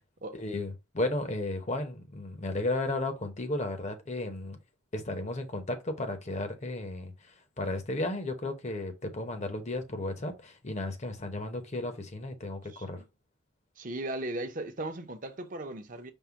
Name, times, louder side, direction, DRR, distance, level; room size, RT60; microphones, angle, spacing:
voice 1, 0.3-4.6 4.9-13.0, left 2 dB, 35° left, 0.8 m, -34 dB
voice 2, 12.7-13.0 13.8-16.1, right 1 dB, 45° right, 0.7 m, -37 dB
5.4 x 2.2 x 4.5 m
head